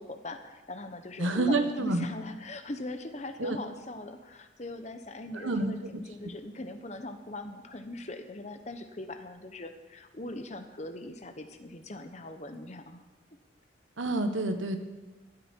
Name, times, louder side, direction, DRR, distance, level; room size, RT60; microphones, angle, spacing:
voice 1, 0.0-13.0, left 2 dB, 35° left, 8 dB, 1.0 m, -41 dB
voice 2, 1.2-2.1 3.4-3.6 5.3-6.0 14.0-14.8, right 2 dB, 90° right, 7 dB, 1.4 m, -28 dB
16.0 x 12.0 x 4.6 m, 1.2 s
head